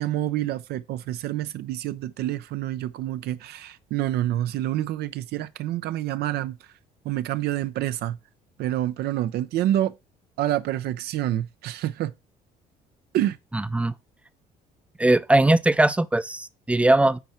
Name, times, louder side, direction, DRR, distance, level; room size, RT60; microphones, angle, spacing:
voice 1, 0.0-6.6 7.1-8.2 8.6-9.9 10.4-12.1 13.1-13.4, right 13 dB, 75° right, 0.5 m, -27 dB
voice 2, 13.5-13.9 15.0-17.2, right 2 dB, 5° right, 0.4 m, -20 dB
8.1 x 4.7 x 4.3 m
cardioid pair, 110°, 17 cm